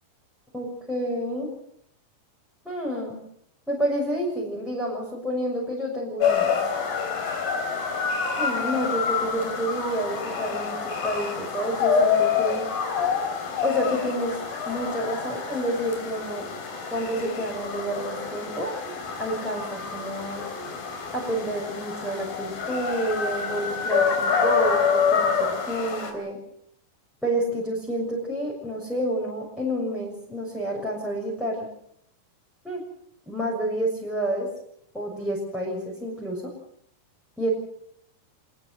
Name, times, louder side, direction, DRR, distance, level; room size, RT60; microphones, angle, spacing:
voice 1, 0.5-1.5 2.6-3.2 3.7-6.5 8.4-12.7 13.6-14.4 14.7-16.4 16.9-18.7 19.2-20.4 21.1-26.4 27.2-31.7 32.6-32.8 33.3-34.5 34.9-36.5 37.4-37.5, right 1 dB, ahead, -4 dB, 6.1 m, -29 dB
sound 1, 6.2-26.1, left 6 dB, 55° left, 5.3 m, -27 dB
26.5 x 20.5 x 6.7 m, 0.68 s
omnidirectional pair, 5.0 m